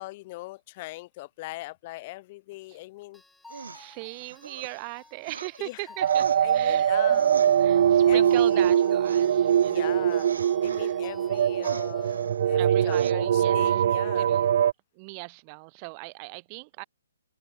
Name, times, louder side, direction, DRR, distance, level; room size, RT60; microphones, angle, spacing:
voice 1, 0.0-3.2 5.6-5.8 6.4-7.6 8.1-8.6 9.6-14.3, left 20 dB, 30° left, 3.1 m, -40 dB
sound 1, 3.1-12.2, left 3 dB, 5° left, 5.8 m, -53 dB
voice 2, 3.5-7.2 7.6-10.2 10.6-11.0 12.6-13.8 14.1-14.6 14.9-16.8, right 34 dB, 25° right, 1.6 m, -39 dB
sound 2, 3.5-5.6 6.1-10.9 11.3-12.6 12.9-13.1, right 5 dB, 85° right, 3.2 m, -43 dB
sound 3, 6.0-14.7, right 9 dB, 50° right, 0.5 m, -22 dB
open air
hypercardioid pair, 155°, 0 cm